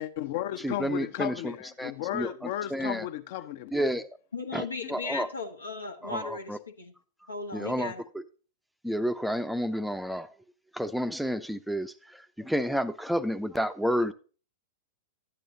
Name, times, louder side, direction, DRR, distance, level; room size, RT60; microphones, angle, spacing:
voice 1, 0.0-3.9, left 12 dB, 55° left, 0.7 m, -34 dB
voice 2, 0.6-1.5 1.8-3.1 3.7-4.1 4.5-5.3 6.0-6.6 7.5-8.2 8.8-10.3 10.7-14.1, equal, ahead, 0.5 m, -30 dB
voice 3, 4.3-6.9 7.3-8.0, left 4 dB, 85° left, 1.1 m, -37 dB
12.0 x 8.9 x 2.7 m
figure-of-eight pair, 100°, 0 cm